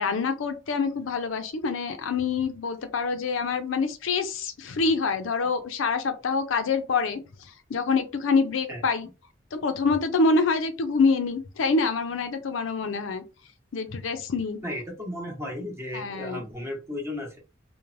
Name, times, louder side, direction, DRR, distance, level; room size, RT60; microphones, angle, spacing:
voice 1, 0.0-9.1 9.5-13.2 13.7-14.6 15.9-16.5, left 4 dB, 85° left, 0.5 m, -26 dB
voice 2, 14.6-17.4, left 1 dB, 15° right, 0.9 m, -34 dB
3.1 x 2.1 x 2.5 m
head